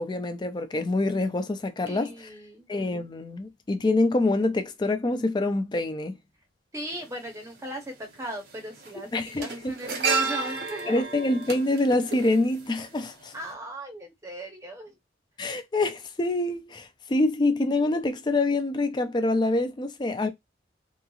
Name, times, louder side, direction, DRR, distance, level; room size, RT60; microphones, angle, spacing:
voice 1, 0.0-2.3 2.7-6.2 9.1-9.7 10.9-13.3 15.4-20.3, left 2 dB, 25° left, 0.4 m, -26 dB
voice 2, 1.9-2.7 6.7-11.1 13.3-15.0, right 1 dB, 15° right, 0.8 m, -38 dB
sound 1, 6.9-7.0 8.2-8.5 8.8-13.0 13.3-13.5, right 4 dB, 60° right, 0.8 m, -31 dB
3.0 x 2.3 x 2.3 m
head